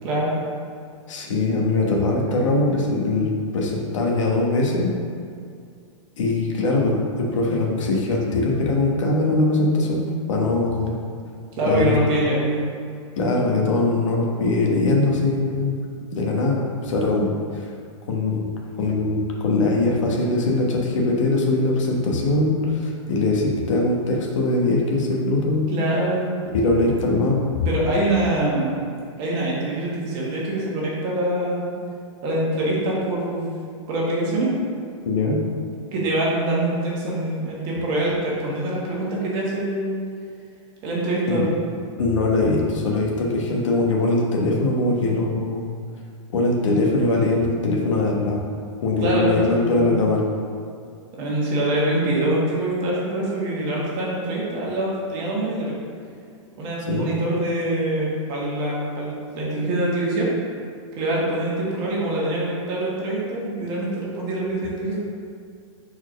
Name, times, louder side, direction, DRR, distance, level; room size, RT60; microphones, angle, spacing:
voice 1, 0.0-0.4 11.6-12.6 25.7-26.2 27.6-28.8 29.2-31.8 32.2-33.6 33.9-34.5 35.9-40.0 40.8-41.5 49.0-49.9 51.2-55.7 56.6-60.3 61.0-65.0, right 1 dB, 30° right, -5 dB, 1.5 m, -24 dB
voice 2, 1.1-4.9 6.2-10.9 11.7-11.9 13.1-15.8 16.1-17.7 18.1-18.5 18.8-25.7 26.5-27.5 35.0-35.4 41.3-41.5 42.0-45.6 46.3-48.4 48.8-50.2 56.9-57.1, left 2 dB, 70° left, -1 dB, 1.4 m, -21 dB
4.5 x 4.5 x 5.3 m, 2.3 s
supercardioid pair, 165°, 16 cm